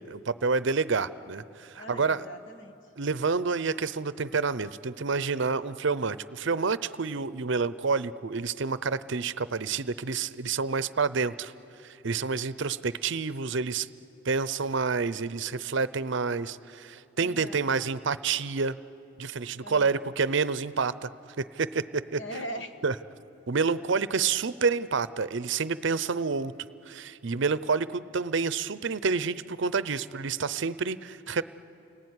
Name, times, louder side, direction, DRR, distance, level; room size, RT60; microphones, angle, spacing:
voice 1, 0.0-2.3 3.0-11.5 11.8-13.9 14.2-18.8 19.2-21.1 21.4-22.2 22.8-22.9 23.5-26.5 26.9-31.4, right 4 dB, 60° right, 16 dB, 0.6 m, -28 dB
voice 2, 1.8-2.8 17.2-17.7 19.6-20.1 22.2-22.8, equal, 60° left, 7 dB, 1.6 m, -40 dB
29.5 x 19.5 x 9.7 m, 2.8 s
head